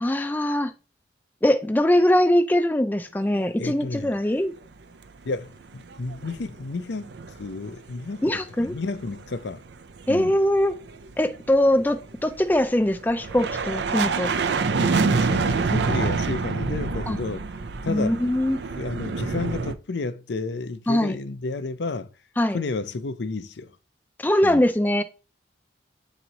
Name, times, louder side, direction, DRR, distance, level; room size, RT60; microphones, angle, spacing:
voice 1, 0.0-0.7 1.4-4.5 8.2-8.8 10.1-10.8 11.2-14.3 17.1-17.2 17.9-18.6 20.9-21.2 22.4-22.6 24.2-25.0, left 1 dB, 10° left, 0.4 m, -22 dB
voice 2, 3.6-4.2 5.2-9.6 10.1-10.4 14.7-17.4 17.8-18.2 18.8-22.1 22.5-23.7 24.4-24.7, left 3 dB, 70° left, 0.5 m, -31 dB
sound 1, 5.6-6.6 6.8-7.7 8.0-19.8, right 4 dB, 65° right, 0.5 m, -27 dB
8.7 x 3.0 x 4.0 m
head